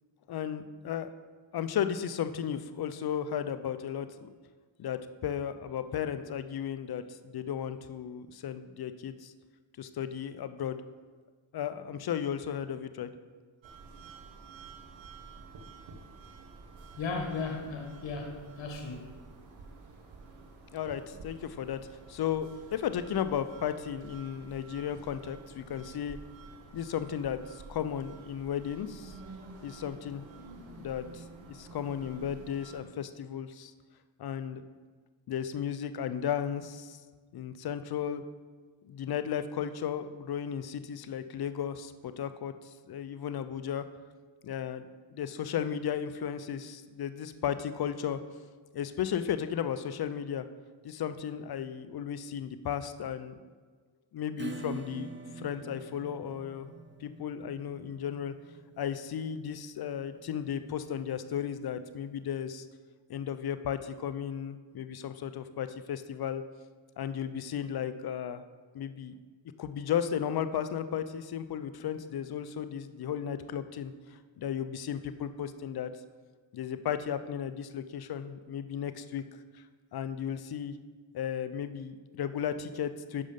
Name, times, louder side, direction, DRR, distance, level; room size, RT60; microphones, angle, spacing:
voice 1, 0.3-1.1 1.5-4.3 4.8-9.3 9.8-10.8 11.5-13.1 20.7-21.8 22.1-26.2 26.7-29.2 29.6-30.2 30.8-33.7 34.2-34.6 35.3-37.0 37.3-38.2 38.8-43.8 44.4-48.2 48.7-50.4 50.8-53.4 54.1-58.3 58.8-62.6 63.1-66.4 67.0-68.4 68.7-69.1 69.6-73.9 74.4-75.9 76.5-79.2 79.9-80.7 81.1-83.2, left 9 dB, 55° left, 12 dB, 0.6 m, -35 dB
sound 1, 13.6-32.8, right 3 dB, 70° right, 1.3 m, -50 dB
voice 2, 17.0-19.1, left 4 dB, 70° left, 3 dB, 1.5 m, -36 dB
Acoustic guitar / Strum, 54.4-61.6, right 3 dB, 25° right, 0.6 m, -46 dB
6.5 x 5.3 x 5.1 m, 1.5 s
supercardioid pair, 55°, 47 cm